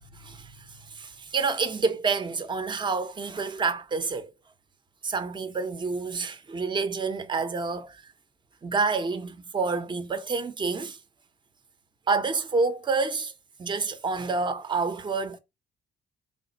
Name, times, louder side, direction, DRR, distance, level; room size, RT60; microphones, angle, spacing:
voice 1, 0.1-4.3 5.0-8.0 8.6-11.0 12.1-13.3 13.6-15.4, right 4 dB, 25° right, 0.6 m, -28 dB
3.5 x 2.5 x 4.0 m
cardioid pair, 90°, 20 cm